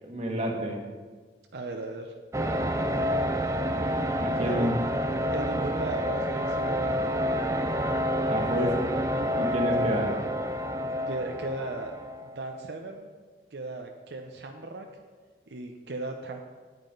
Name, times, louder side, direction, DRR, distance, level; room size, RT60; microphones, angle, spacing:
voice 1, 0.0-0.8 4.2-4.7 8.3-8.7 9.1-10.2, equal, 40° right, 0 dB, 1.5 m, -29 dB
voice 2, 1.5-2.1 4.4-4.7 5.3-6.9 8.5-8.8 11.1-11.9 12.2-13.1 13.5-14.9 15.5-16.4, right 2 dB, 75° right, 3 dB, 0.7 m, -36 dB
sound 1, 2.3-12.3, equal, 15° right, 0.4 m, -28 dB
9.7 x 9.0 x 3.9 m, 1.5 s
head